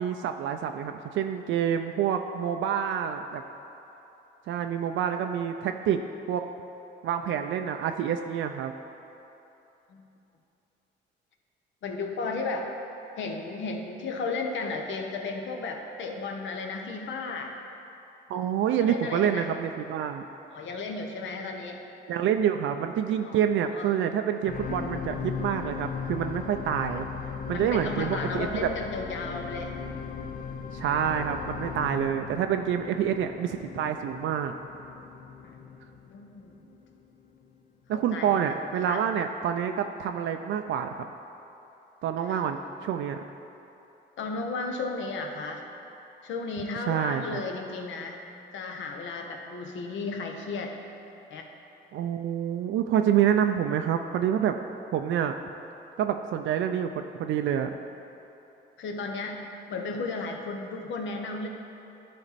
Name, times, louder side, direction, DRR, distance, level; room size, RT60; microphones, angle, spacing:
voice 1, 0.0-3.4 4.5-6.0 6.3-6.5 7.0-8.7 18.3-20.2 22.1-27.1 27.5-28.7 30.7-34.5 37.9-41.1 42.0-43.2 46.9-47.4 51.9-54.5 54.9-55.3 56.0-57.8, right 9 dB, 75° right, 6 dB, 0.4 m, -27 dB
voice 2, 11.8-12.7 13.2-17.5 18.8-19.5 20.5-21.8 23.2-23.4 23.7-23.9 27.5-29.7 35.4-35.6 36.1-36.5 37.9-38.5 38.8-39.1 42.3-42.4 44.2-45.6 46.2-48.2 48.5-50.8 51.3-51.5 58.8-61.5, left 3 dB, 70° left, 3 dB, 0.9 m, -34 dB
sound 1, 24.5-36.8 37.4-37.5, left 6 dB, 45° left, 0.6 m, -37 dB
12.0 x 4.3 x 4.1 m, 2.9 s
cardioid pair, 90°, 20 cm